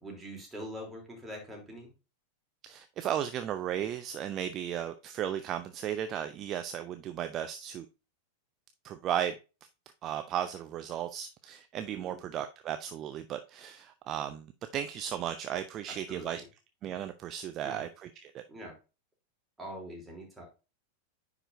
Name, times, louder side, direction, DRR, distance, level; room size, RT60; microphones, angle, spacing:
voice 1, 0.0-1.9 11.9-12.2 16.1-16.4 17.6-17.9 18.5-18.7 19.6-20.5, equal, 10° right, 3.3 m, -43 dB
voice 2, 2.6-7.9 8.8-9.3 10.0-14.5 14.7-16.4 16.8-18.4, right 10 dB, 30° right, 0.6 m, -35 dB
9.9 x 4.9 x 2.7 m
figure-of-eight pair, 90°, 0 cm